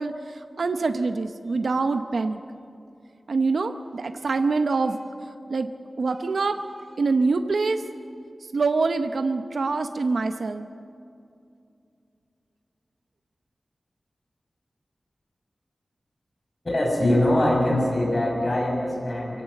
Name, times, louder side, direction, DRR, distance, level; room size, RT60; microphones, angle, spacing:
voice 1, 0.0-2.4 3.3-5.0 5.5-5.7 6.0-6.6 7.0-7.8 8.5-10.7, right 3 dB, 80° right, 8 dB, 0.8 m, -25 dB
voice 2, 16.6-19.4, left 1 dB, 40° left, -1 dB, 6.0 m, -22 dB
24.0 x 16.5 x 8.3 m, 2.5 s
wide cardioid pair, 100°, 0 cm